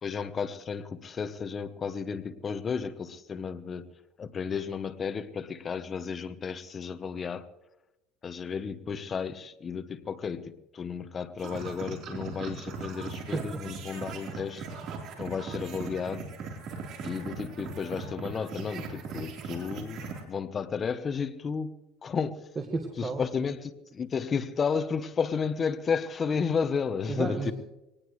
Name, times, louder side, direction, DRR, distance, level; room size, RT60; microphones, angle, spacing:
voice 1, 0.0-3.9 4.2-7.5 8.2-14.7 15.2-16.3 17.0-22.4 23.0-27.5, left 6 dB, 25° left, 1.0 m, -33 dB
sound 1, 11.4-20.2, right 5 dB, 50° right, 3.8 m, -39 dB
voice 2, 22.5-23.2 27.1-27.5, right 4 dB, 20° right, 1.6 m, -32 dB
22.5 x 19.0 x 3.2 m
cardioid pair, 140°, 0 cm